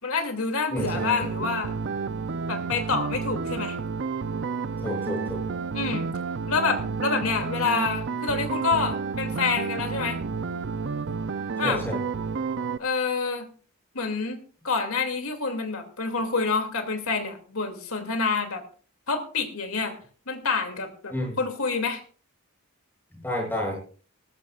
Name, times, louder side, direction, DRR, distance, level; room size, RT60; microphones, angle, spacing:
voice 1, 0.0-1.7 2.5-3.8 5.7-6.1 6.5-10.2 11.6-11.8 12.8-13.5 13.9-18.6 19.1-20.0 20.3-22.0, left 4 dB, 70° left, 5 dB, 2.6 m, -27 dB
voice 2, 0.7-1.3 4.8-5.4 11.6-12.0 21.1-21.4 23.1-23.8, left 1 dB, 10° left, -1 dB, 7.2 m, -30 dB
sound 1, 0.8-12.8, right 5 dB, 55° right, 0.5 m, -30 dB
19.0 x 16.0 x 2.4 m, 0.41 s
head